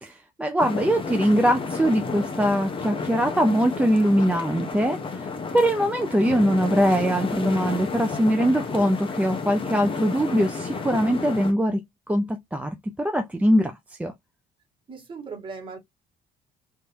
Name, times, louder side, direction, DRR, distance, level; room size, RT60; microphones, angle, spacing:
voice 1, 0.0-14.1, equal, 10° right, 0.6 m, -22 dB
sound 1, 0.6-11.5, left 4 dB, 30° left, 1.1 m, -31 dB
voice 2, 14.9-15.8, right 4 dB, 30° right, 2.0 m, -38 dB
3.5 x 3.2 x 2.8 m
cardioid pair, 110°, 17 cm